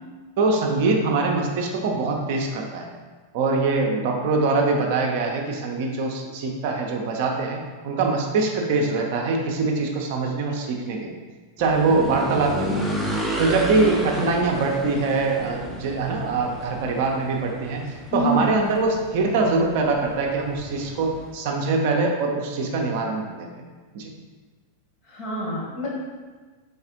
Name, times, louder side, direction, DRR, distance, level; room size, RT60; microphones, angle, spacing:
voice 1, 0.4-2.9 3.3-11.2 11.6-12.9 13.4-17.8 18.1-23.5 23.9-24.1, right 3 dB, 50° right, 1 dB, 0.5 m, -23 dB
sound 1, 11.6-21.3, equal, ahead, 0.5 m, -32 dB
voice 2, 18.1-18.4 25.1-25.9, right 1 dB, 40° left, -4 dB, 1.2 m, -26 dB
3.9 x 3.5 x 2.8 m, 1.4 s
figure-of-eight pair, 90°, 0 cm